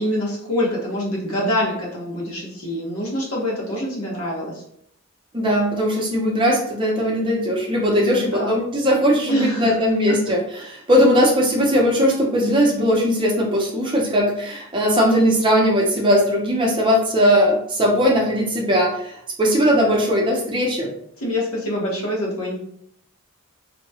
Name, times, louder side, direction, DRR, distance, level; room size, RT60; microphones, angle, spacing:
voice 1, 0.0-4.6 7.9-8.5 9.3-9.8 10.1-10.2 21.2-22.6, left 1 dB, 80° left, -3 dB, 1.0 m, -25 dB
voice 2, 5.3-20.9, equal, 25° right, -2 dB, 0.6 m, -19 dB
2.7 x 2.2 x 2.7 m, 0.70 s
head